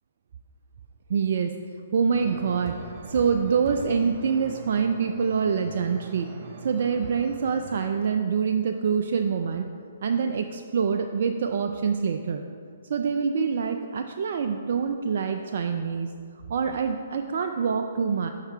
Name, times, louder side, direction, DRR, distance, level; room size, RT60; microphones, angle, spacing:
voice 1, 1.1-1.5 1.9-2.7 3.1-6.3 6.6-9.7 10.0-12.4 12.9-16.1 16.5-18.3, right 6 dB, 60° right, 5 dB, 0.3 m, -25 dB
sound 1, 2.1-7.8, right 4 dB, 40° right, 0.7 m, -42 dB
5.6 x 5.5 x 4.5 m, 2.3 s
figure-of-eight pair, 130°, 0 cm